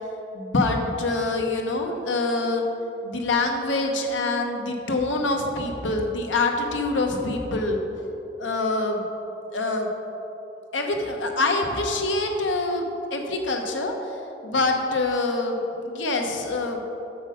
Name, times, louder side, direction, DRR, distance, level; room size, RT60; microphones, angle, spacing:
voice 1, 0.3-2.7 3.0-7.8 8.4-9.0 9.5-9.9 10.7-13.9 14.4-16.8, left 2 dB, 85° left, 3 dB, 0.9 m, -25 dB
6.5 x 6.0 x 5.1 m, 3.0 s
head